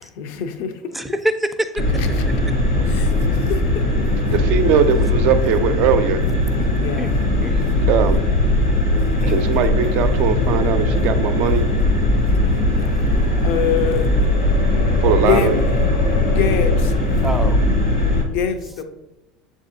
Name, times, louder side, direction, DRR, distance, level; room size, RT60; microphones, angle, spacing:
voice 1, 0.0-1.0 2.0-2.2 2.9-3.9 6.8-7.1 13.3-14.1 15.2-15.5 16.2-16.9 18.3-18.8, left 7 dB, 60° left, 7 dB, 0.5 m, -24 dB
voice 2, 0.9-1.7 2.2-2.3 7.0-7.1 7.4-7.9 9.2-9.7 17.2-17.8, right 1 dB, 5° right, 7 dB, 0.4 m, -26 dB
sound 1, 1.8-18.2, left 2 dB, 80° left, 1.1 m, -19 dB
voice 3, 4.3-6.2 7.9-8.3 9.3-11.6 15.0-15.6, right 8 dB, 60° right, 9 dB, 0.4 m, -20 dB
7.2 x 2.5 x 2.6 m, 0.95 s
hypercardioid pair, 80°, 3 cm